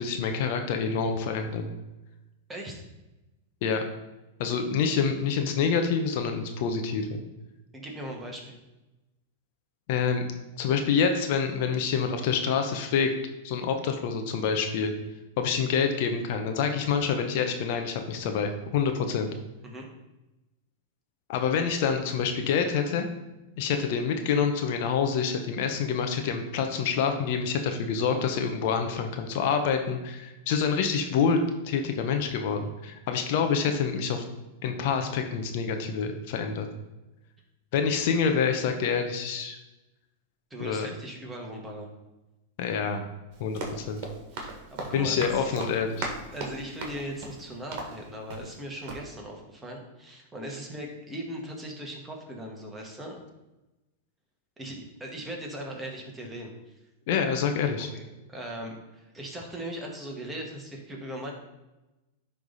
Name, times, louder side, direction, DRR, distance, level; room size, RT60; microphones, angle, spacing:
voice 1, 0.0-1.7 3.6-3.8 4.4-7.2 9.9-10.2 10.6-13.1 13.4-14.9 15.4-19.3 21.3-23.0 23.6-31.4 31.6-34.2 34.6-36.7 37.7-39.6 40.6-40.9 42.6-43.0 43.4-44.0 44.9-46.1 57.1-57.9, left 6 dB, 60° left, 5 dB, 0.9 m, -27 dB
voice 2, 2.5-2.8 7.7-8.6 19.6-19.9 40.5-41.9 44.3-45.6 46.3-53.2 54.6-56.7 57.8-58.0 58.3-61.3, right 1 dB, 10° right, 0 dB, 1.7 m, -39 dB
Run, 43.3-48.6 48.9-49.0, right 3 dB, 55° right, 1.7 m, -38 dB
10.5 x 3.5 x 4.1 m, 1.0 s
hypercardioid pair, 110°, 0 cm